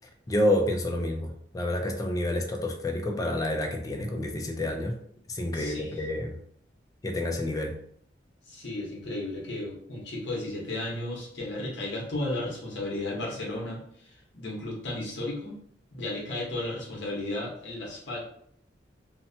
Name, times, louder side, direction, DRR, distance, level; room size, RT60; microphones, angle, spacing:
voice 1, 0.3-5.0 5.3-6.4 7.0-7.8, left 1 dB, 20° left, 3 dB, 0.4 m, -29 dB
voice 2, 5.5-6.0 8.5-15.5 15.9-18.2, left 2 dB, 70° left, -2 dB, 0.9 m, -34 dB
2.8 x 2.1 x 2.6 m, 0.65 s
head